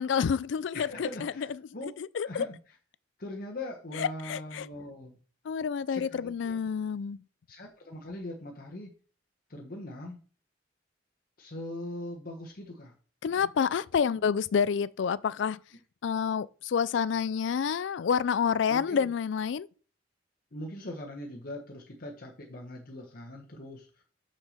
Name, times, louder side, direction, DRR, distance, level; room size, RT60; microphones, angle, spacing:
voice 1, 0.0-1.5 2.0-2.5 4.0-4.7 5.5-7.2 13.2-15.6 16.0-19.7, left 7 dB, 75° left, 0.4 m, -28 dB
voice 2, 0.7-1.9 2.2-2.8 3.2-5.2 5.9-6.6 7.5-8.9 9.5-10.2 11.4-12.9 14.1-14.2 18.7-19.1 20.5-24.0, left 1 dB, 55° left, 1.3 m, -41 dB
6.1 x 5.7 x 6.6 m
head